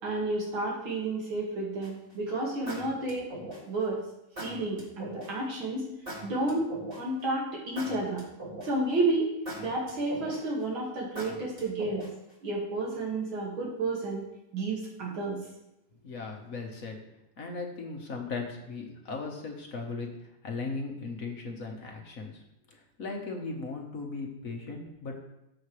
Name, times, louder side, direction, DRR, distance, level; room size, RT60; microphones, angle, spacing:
voice 1, 0.0-3.3 3.6-4.0 4.4-5.9 6.2-8.2 8.6-9.3 9.6-12.0 12.4-14.2 14.5-15.4, right 2 dB, 75° right, -4 dB, 2.9 m, -31 dB
sound 1, 1.8-2.1 2.7-3.8 4.4-5.3 6.1-7.2 7.8-8.9 9.5-10.6 11.2-12.3, right 1 dB, 25° right, 2.6 m, -40 dB
voice 2, 16.0-17.0 17.4-22.4 22.7-25.2, left 3 dB, 45° left, 1 dB, 1.5 m, -37 dB
14.0 x 5.8 x 3.3 m, 0.87 s
omnidirectional pair, 2.2 m